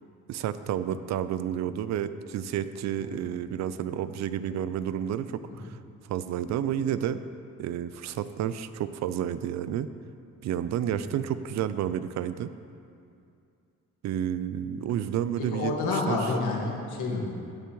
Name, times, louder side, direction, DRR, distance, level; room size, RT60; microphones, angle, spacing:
voice 1, 0.3-5.8 6.1-7.2 7.6-9.9 10.4-12.5 14.0-15.7 16.1-16.2, right 10 dB, 65° right, 13 dB, 0.5 m, -30 dB
voice 2, 15.4-17.3, left 3 dB, 85° left, -2 dB, 1.8 m, -30 dB
16.0 x 6.8 x 3.1 m, 2.5 s
cardioid pair, 115°, 30 cm